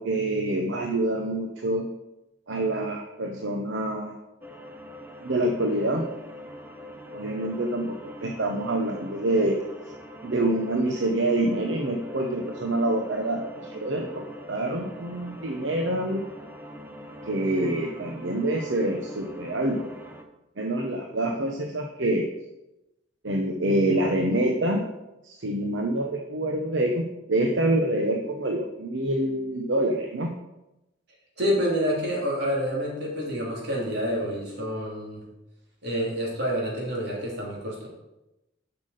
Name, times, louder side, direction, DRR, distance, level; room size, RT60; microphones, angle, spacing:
voice 1, 0.0-1.9 2.5-4.1 5.2-6.0 7.1-9.6 10.2-16.2 17.2-19.9 20.6-22.3 23.2-24.8 25.2-30.3, right 1 dB, 85° right, 2 dB, 0.9 m, -26 dB
sound 1, 4.4-20.2, equal, 10° right, 0.8 m, -43 dB
voice 2, 31.4-35.2 35.8-37.9, equal, 65° right, -3 dB, 3.3 m, -28 dB
7.5 x 6.0 x 6.6 m, 0.94 s
head